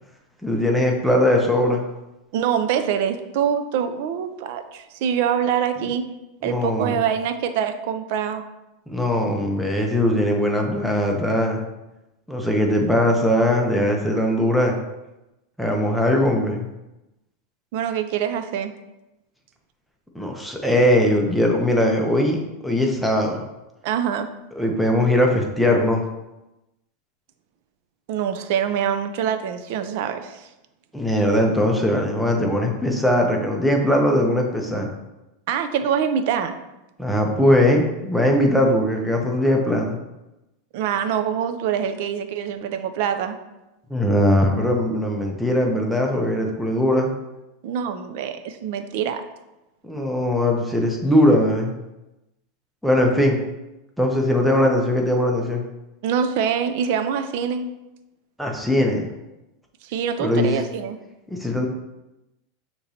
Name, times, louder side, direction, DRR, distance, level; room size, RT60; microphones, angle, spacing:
voice 1, 0.4-1.8 6.4-7.0 8.9-11.6 12.3-14.8 15.6-16.7 20.1-23.5 24.6-26.0 30.9-34.9 37.0-40.0 43.9-47.1 49.8-51.8 52.8-53.4 54.0-55.6 58.4-59.1 60.2-60.5 61.3-61.7, left 1 dB, ahead, 0 dB, 0.7 m, -20 dB
voice 2, 2.3-6.1 6.4-8.5 17.7-18.7 23.8-24.3 28.1-30.5 35.5-36.6 40.7-43.4 47.6-49.2 56.0-57.7 59.8-61.0, right 8 dB, 60° right, 9 dB, 0.4 m, -24 dB
6.4 x 3.0 x 2.7 m, 0.99 s
supercardioid pair, 140°, 0 cm